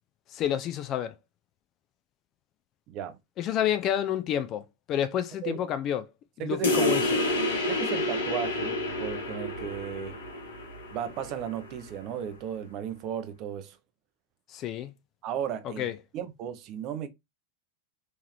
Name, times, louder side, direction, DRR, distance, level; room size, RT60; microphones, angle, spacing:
voice 1, 0.3-1.2 3.4-6.1 6.4-7.1 14.5-14.9 15.6-16.0, left 10 dB, 35° left, 0.5 m, -29 dB
voice 2, 2.9-3.2 5.4-5.6 6.4-6.9 7.7-10.2 10.9-13.8 15.2-15.9 16.1-17.1, right 8 dB, 40° right, 0.6 m, -35 dB
sound 1, 6.6-11.7, left 1 dB, 70° left, 1.5 m, -29 dB
3.7 x 3.1 x 2.9 m
figure-of-eight pair, 90°, 0 cm